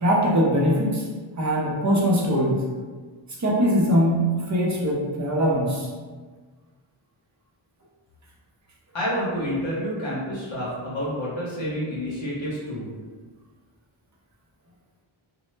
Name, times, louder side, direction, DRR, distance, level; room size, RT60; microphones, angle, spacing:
voice 1, 0.0-1.1 1.4-2.6 3.4-5.9, equal, 35° right, -4 dB, 0.5 m, -21 dB
voice 2, 8.9-12.9, equal, 65° left, -7 dB, 0.8 m, -29 dB
2.0 x 2.0 x 3.1 m, 1.4 s
wide cardioid pair, 90°, 50 cm